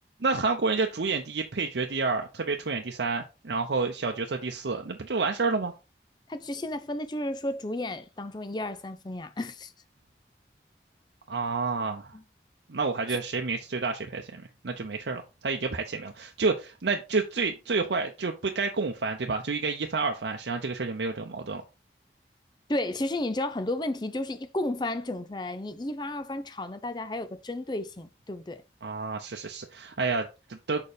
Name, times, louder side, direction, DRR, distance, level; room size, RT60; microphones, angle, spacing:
voice 1, 0.2-5.7 11.3-12.2 12.7-21.6 28.8-30.8, right 4 dB, 85° right, 0.7 m, -29 dB
voice 2, 6.3-9.7 12.1-12.2 22.7-28.6, left 1 dB, 25° left, 0.6 m, -32 dB
5.4 x 4.4 x 5.0 m
head